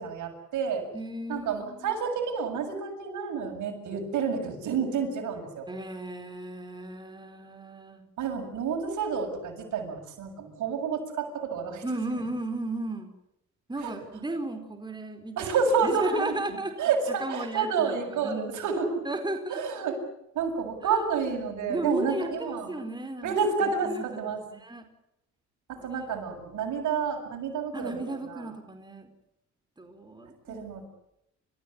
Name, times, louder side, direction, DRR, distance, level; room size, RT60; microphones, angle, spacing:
voice 1, 0.0-0.8 1.3-5.7 8.2-11.8 13.8-13.9 15.4-19.0 19.5-20.0 20.3-22.7 23.2-24.4 25.7-28.5 30.5-30.9, right 5 dB, 75° right, 3 dB, 7.3 m, -29 dB
voice 2, 0.9-2.0 5.7-8.0 11.8-13.1 13.7-15.5 15.8-16.7 17.2-18.5 19.0-19.6 21.7-23.4 23.6-24.9 27.7-29.1 29.8-30.7, right 2 dB, 15° right, 5 dB, 4.8 m, -35 dB
30.0 x 15.0 x 9.7 m, 0.83 s
cardioid pair, 90°, 30 cm